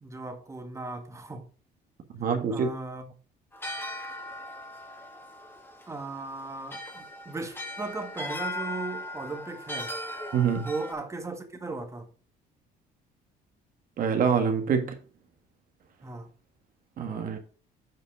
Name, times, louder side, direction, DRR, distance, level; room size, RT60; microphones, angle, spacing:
voice 1, 0.0-1.5 2.5-3.1 5.9-10.0 10.6-12.1 16.0-16.3, right 3 dB, 15° right, 1.7 m, -37 dB
voice 2, 2.1-2.7 10.3-10.7 14.0-14.9 17.0-17.4, right 6 dB, 55° right, 1.7 m, -25 dB
sound 1, 3.5-10.9, left 1 dB, 15° left, 2.0 m, -38 dB
7.9 x 5.3 x 5.0 m
cardioid pair, 110°, 17 cm